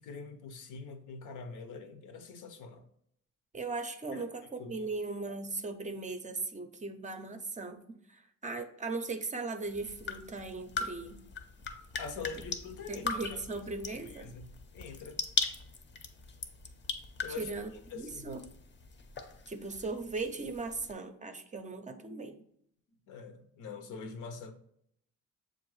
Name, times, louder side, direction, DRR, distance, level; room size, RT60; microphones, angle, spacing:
voice 1, 0.0-2.8 4.1-4.3 4.6-4.9 12.0-13.4 14.1-14.5 14.7-15.2 17.2-17.5 17.9-18.4 23.1-24.5, left 5 dB, 80° left, 0.7 m, -44 dB
voice 2, 3.5-7.8 8.1-11.2 12.9-14.3 17.4-18.5 19.5-22.4, right 3 dB, 25° right, 0.5 m, -38 dB
sound 1, 9.7-20.9, left 4 dB, 40° left, 0.6 m, -40 dB
6.8 x 2.5 x 3.1 m
cardioid pair, 90°, 30 cm